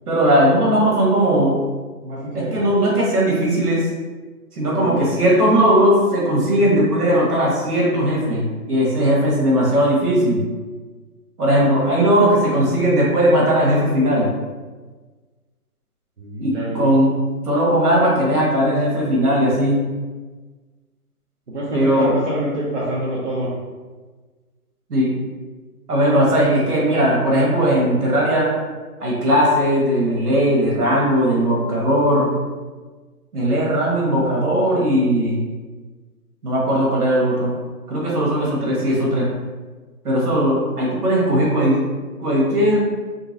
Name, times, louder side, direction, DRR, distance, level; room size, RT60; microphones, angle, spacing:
voice 1, 0.1-1.6 2.3-3.9 4.5-10.4 11.4-14.3 16.4-17.2 17.4-19.8 21.7-22.1 24.9-25.1 25.9-28.6 29.0-32.3 33.3-35.5 36.4-37.5 37.9-39.3 40.0-41.8 42.2-42.8, equal, 70° right, -3 dB, 1.4 m, -18 dB
voice 2, 2.0-2.6 4.7-5.1 16.2-16.9 21.5-23.5, right 1 dB, 50° right, -7 dB, 0.7 m, -26 dB
3.9 x 2.3 x 2.7 m, 1.4 s
hypercardioid pair, 175°, 47 cm